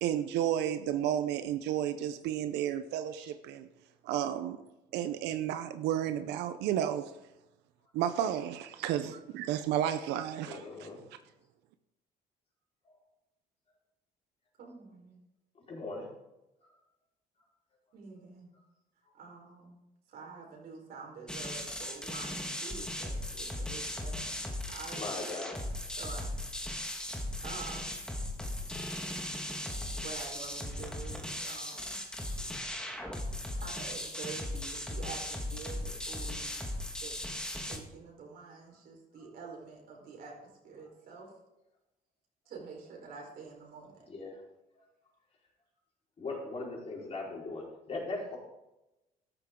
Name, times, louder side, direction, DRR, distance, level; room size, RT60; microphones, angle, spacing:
voice 1, 0.0-3.7 4.0-4.6 4.9-7.1 7.9-10.9, right 10 dB, 90° right, 10 dB, 0.8 m, -32 dB
voice 2, 10.5-11.0 12.9-13.0 15.5-16.1 19.0-19.1 25.0-25.7 31.3-31.4 32.5-32.6 33.2-33.3 36.7-36.8 44.1-44.4 46.2-48.4, left 3 dB, 35° left, -3 dB, 4.7 m, -40 dB
voice 3, 14.6-15.2 17.9-18.5 19.1-19.8 20.1-25.4 25.9-26.2 27.4-27.9 30.0-32.0 33.5-36.6 37.0-37.2 37.6-41.3 42.5-44.1, right 5 dB, 65° right, 0 dB, 4.5 m, -47 dB
sound 1, 21.3-37.8, left 1 dB, 5° left, 1.8 m, -38 dB
14.0 x 11.5 x 3.8 m, 0.95 s
cardioid pair, 110°, 17 cm